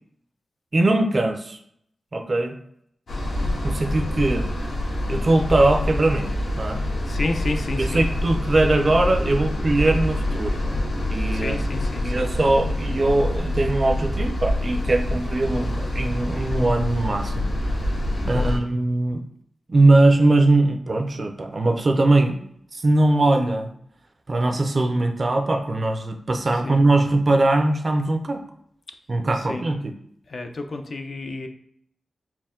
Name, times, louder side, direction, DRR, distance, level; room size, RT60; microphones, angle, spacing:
voice 1, 0.7-1.6 2.1-2.6 3.6-4.5 5.1-6.3 6.6-6.8 7.8-10.5 11.1-11.6 12.0-17.5 18.2-19.2 19.7-23.7 24.3-28.4 29.1-29.9, right 2 dB, 35° right, 5 dB, 0.4 m, -21 dB
sound 1, 3.1-18.6, left 1 dB, 75° left, 1.3 m, -26 dB
voice 2, 7.1-8.0 11.3-12.3 15.5-15.9 18.2-18.6 26.5-26.8 29.3-29.6 30.3-31.5, left 2 dB, 50° left, 6 dB, 0.4 m, -31 dB
4.3 x 2.1 x 3.6 m, 0.69 s
wide cardioid pair, 135°, 0 cm